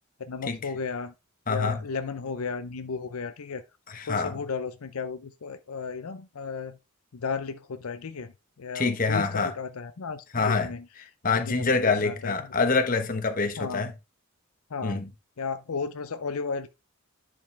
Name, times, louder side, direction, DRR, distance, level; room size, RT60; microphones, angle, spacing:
voice 1, 0.2-1.1 1.5-3.6 4.1-6.8 7.1-8.3 8.6-10.8 11.3-12.3 13.6-13.9 14.7-15.0 15.4-16.7, left 5 dB, 80° left, 0.6 m, -34 dB
voice 2, 1.5-1.8 3.9-4.4 8.7-9.5 10.3-10.7 11.2-13.9 14.8-15.1, left 4 dB, 40° left, 1.2 m, -26 dB
10.0 x 5.5 x 3.4 m
head